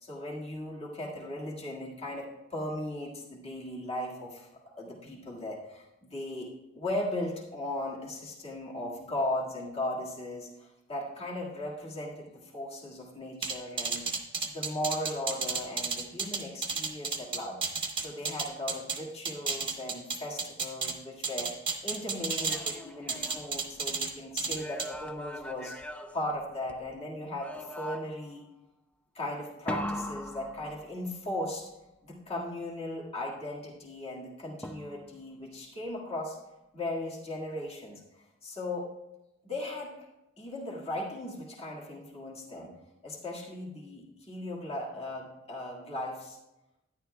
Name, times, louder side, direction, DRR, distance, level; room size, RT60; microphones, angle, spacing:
voice 1, 0.0-6.5 6.8-14.1 14.5-17.6 18.0-21.5 21.8-25.8 26.1-28.4 29.1-31.7 32.0-36.4 36.7-38.0 38.4-38.9 39.4-39.9 40.4-42.7 43.0-46.4, left 1 dB, 30° left, -4 dB, 1.8 m, -37 dB
sound 1, 13.4-19.0 19.3-20.9 21.2-22.8 23.1-24.1 24.4-24.9, right 5 dB, 25° right, 1.0 m, -32 dB
sound 2, 22.2-24.1 24.5-26.9 27.4-28.3 29.7-31.3 34.6-35.3, left 1 dB, 5° left, 0.3 m, -41 dB
12.0 x 10.5 x 2.3 m, 0.92 s
head